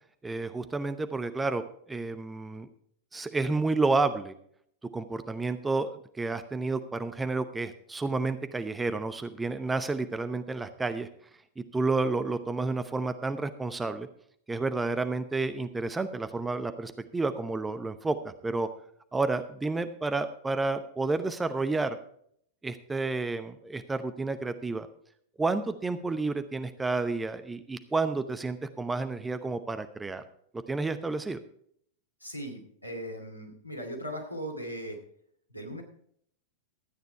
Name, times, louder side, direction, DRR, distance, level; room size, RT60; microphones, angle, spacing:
voice 1, 0.2-1.6 1.9-2.7 3.1-4.3 4.9-11.1 11.6-14.1 14.5-18.7 19.1-22.0 22.6-24.9 25.4-30.2 30.7-31.4, right 3 dB, 10° right, 10 dB, 0.8 m, -30 dB
voice 2, 32.2-35.0 35.5-35.8, equal, 90° right, 2 dB, 2.4 m, -38 dB
13.0 x 9.2 x 4.6 m, 0.66 s
figure-of-eight pair, 90°, 0 cm